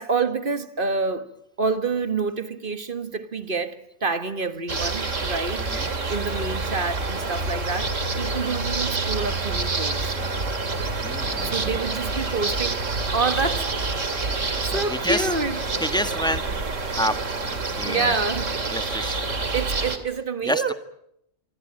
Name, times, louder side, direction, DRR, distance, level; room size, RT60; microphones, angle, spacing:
voice 1, 0.0-1.3 1.6-10.1 11.4-12.9 13.1-13.7 14.7-15.6 17.8-18.8 19.5-20.7, right 4 dB, 45° right, 1.8 m, -28 dB
sound 1, 4.7-20.0, right 3 dB, 75° right, 2.9 m, -27 dB
voice 2, 11.0-11.8 14.6-15.3 15.8-16.4 17.0-17.1 17.6-18.1 18.7-19.2 20.4-20.6, equal, 5° left, 1.5 m, -28 dB
26.0 x 25.0 x 8.9 m
omnidirectional pair, 1.3 m